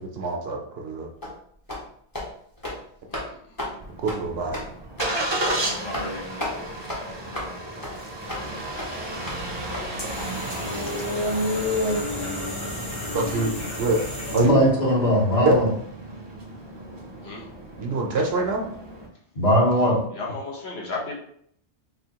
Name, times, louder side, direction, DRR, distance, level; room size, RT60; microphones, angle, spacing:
voice 1, 0.0-1.1 4.0-4.6 13.1-13.5 13.8-14.0 14.3-14.6 15.4-15.6 17.8-18.6, right 3 dB, 65° right, 2 dB, 0.8 m, -24 dB
sound 1, 1.2-1.4 1.7-1.9 2.1-2.3 2.6-2.8 3.1-3.3 3.6-3.7 4.1-4.2 4.5-4.7 5.0-5.1 5.4-5.6 5.9-6.1 6.4-6.5 6.9-7.0 7.3-7.5 7.8-7.9 8.3-8.4 8.8-8.9 9.3-9.4 9.7-9.8 10.2-10.3, left 1 dB, 20° left, 0.8 m, -32 dB
voice 2, 3.1-3.6 5.6-6.7 7.0-8.6 10.9-12.0 13.3-13.4 17.2-17.5 19.8-21.1, left 3 dB, 65° left, -3 dB, 1.1 m, -38 dB
Engine starting, 3.8-19.1, equal, 30° right, 0.6 m, -32 dB
sound 2, 9.3-14.7, left 2 dB, 85° left, 1.5 m, -34 dB
voice 3, 14.3-15.7 19.3-20.0, equal, 40° left, -3 dB, 1.1 m, -20 dB
4.1 x 2.7 x 2.8 m, 0.67 s
omnidirectional pair, 1.2 m